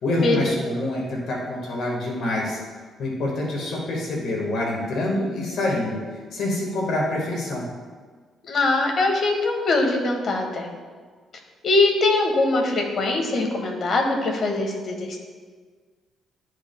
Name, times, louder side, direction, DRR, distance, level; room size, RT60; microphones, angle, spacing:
voice 1, 0.0-2.6 3.0-7.7, left 1 dB, 70° left, -2 dB, 1.5 m, -26 dB
voice 2, 8.5-10.7 11.6-15.2, left 2 dB, 55° left, 2 dB, 1.3 m, -22 dB
11.5 x 4.8 x 2.2 m, 1.5 s
cardioid pair, 90°, 0 cm